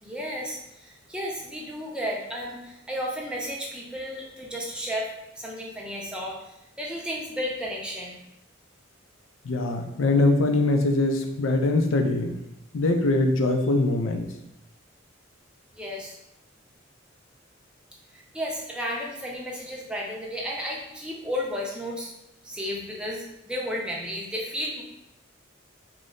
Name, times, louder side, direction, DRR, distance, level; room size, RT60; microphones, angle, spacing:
voice 1, 0.0-5.1 5.3-8.2 15.7-16.2 18.1-22.1 22.4-24.8, equal, 5° right, -3 dB, 0.5 m, -33 dB
voice 2, 9.4-12.4 12.7-14.2, left 2 dB, 80° left, 5 dB, 0.4 m, -22 dB
3.0 x 2.0 x 3.7 m, 0.85 s
head